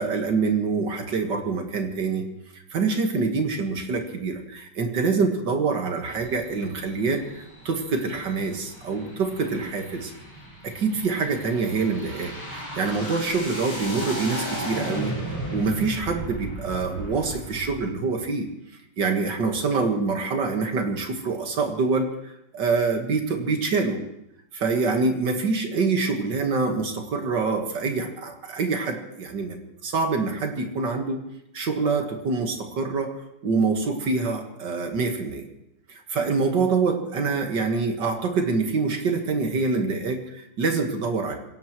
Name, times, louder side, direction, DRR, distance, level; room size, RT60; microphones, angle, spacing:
voice 1, 0.0-2.2 2.5-10.1 10.6-15.2 15.5-18.5 19.0-24.0 24.5-29.6 29.8-31.2 31.5-33.2 33.4-35.4 35.9-41.4, right 4 dB, 55° right, 4 dB, 2.2 m, -25 dB
sound 1, 6.0-17.8, right 1 dB, 10° left, 6.1 m, -36 dB
26.0 x 16.5 x 3.1 m, 0.83 s
omnidirectional pair, 2.4 m